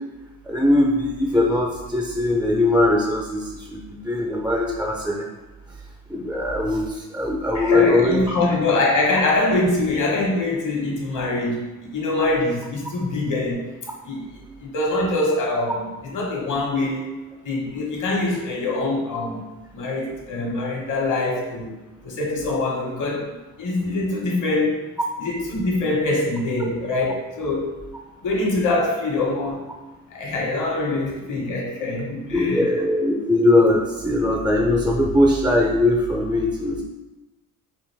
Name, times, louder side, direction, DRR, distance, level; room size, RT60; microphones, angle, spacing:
voice 1, 0.5-5.3 6.1-8.5 32.3-36.8, left 2 dB, 5° right, 0 dB, 0.4 m, -20 dB
voice 2, 7.5-13.6 14.0-17.1 17.4-19.4 19.7-21.7 22.0-23.3 23.6-24.8 25.2-27.8 28.2-29.7 30.1-32.9, left 2 dB, 55° left, -2 dB, 1.4 m, -24 dB
5.0 x 2.5 x 3.4 m, 1.1 s
cardioid pair, 85°, 37 cm